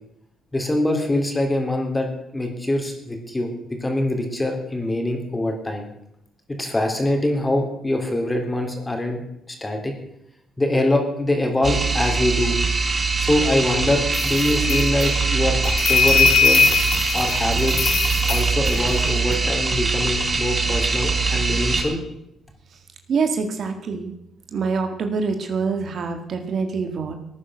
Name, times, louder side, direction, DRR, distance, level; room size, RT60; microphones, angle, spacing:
voice 1, 0.5-2.1 2.3-3.5 3.8-5.8 6.5-9.2 9.5-9.9 10.6-12.6 13.2-16.7 17.1-17.9 18.3-22.0, left 1 dB, 15° left, 3 dB, 3.4 m, -23 dB
sound 1, 11.6-21.8, right 4 dB, 35° right, 3.7 m, -22 dB
sound 2, 14.1-19.3, left 5 dB, 65° left, 2.7 m, -21 dB
voice 2, 23.1-24.1 24.5-27.1, right 5 dB, 60° right, 6 dB, 1.9 m, -25 dB
17.5 x 9.7 x 6.4 m, 0.80 s
cardioid pair, 90°, 0 cm